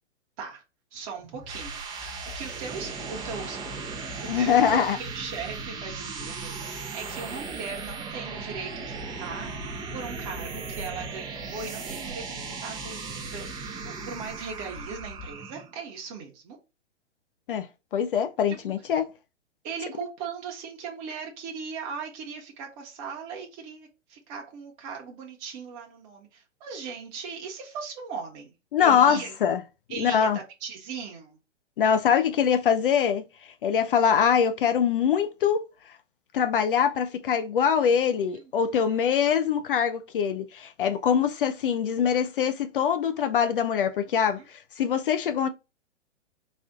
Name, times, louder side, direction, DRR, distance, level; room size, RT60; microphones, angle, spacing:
voice 1, 0.9-9.5 9.9-13.5 13.8-16.6 18.5-18.6 19.6-28.5 28.8-29.3 29.9-31.4 38.3-38.5 38.8-39.1 44.1-44.5, right 5 dB, 30° right, 1.0 m, -39 dB
sound 1, 1.2-15.7, right 4 dB, 10° right, 0.5 m, -37 dB
voice 2, 4.3-5.0 17.5-17.7 17.9-19.1 28.7-29.6 30.0-30.4 31.8-33.2 33.6-35.7 36.3-45.5, left 8 dB, 50° left, 0.4 m, -23 dB
4.2 x 2.4 x 3.5 m
figure-of-eight pair, 115°, 36 cm